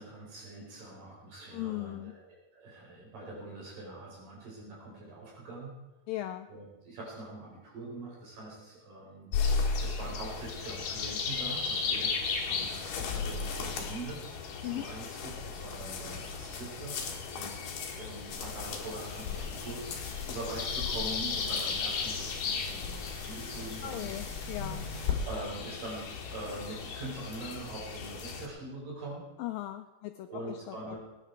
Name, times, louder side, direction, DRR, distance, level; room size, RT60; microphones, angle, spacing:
voice 1, 0.0-5.7 6.5-14.2 14.6-19.8 20.1-24.1 24.6-29.3 30.3-31.0, right 2 dB, 55° right, -3 dB, 5.8 m, -43 dB
voice 2, 1.5-2.1 6.1-6.5 14.6-14.9 23.8-24.9 29.4-31.0, left 15 dB, 90° left, 7 dB, 2.0 m, -38 dB
sound 1, 9.3-28.5, left 5 dB, 60° left, 3.0 m, -35 dB
sound 2, 18.3-25.1, left 6 dB, 40° left, 3.9 m, -40 dB
21.5 x 10.0 x 4.6 m, 1.1 s
omnidirectional pair, 4.8 m